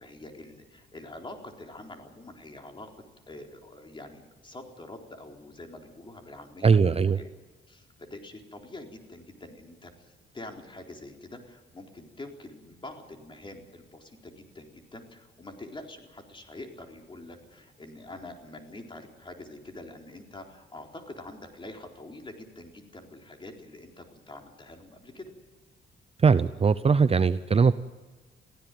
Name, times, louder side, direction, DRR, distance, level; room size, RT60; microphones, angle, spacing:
voice 1, 0.0-2.9 3.3-7.3 7.7-25.3, left 2 dB, 25° left, 3 dB, 4.1 m, -45 dB
voice 2, 6.6-7.2 26.2-27.7, right 5 dB, 30° right, 13 dB, 0.7 m, -20 dB
22.5 x 16.0 x 9.3 m, 1.3 s
cardioid pair, 90°, 20 cm